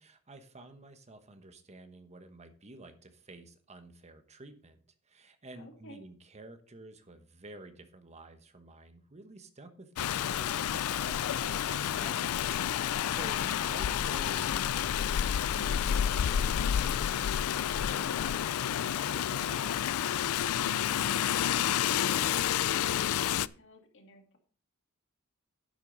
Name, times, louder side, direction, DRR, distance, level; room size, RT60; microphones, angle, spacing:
voice 1, 0.0-4.8 5.0-20.1, right 2 dB, 30° right, 9 dB, 1.1 m, -51 dB
voice 2, 5.6-6.0 20.9-24.4, left 1 dB, 60° left, 4 dB, 2.3 m, -52 dB
Rain, 10.0-23.5, left 9 dB, 80° left, 0.4 m, -30 dB
10.5 x 8.2 x 4.0 m, 0.43 s
head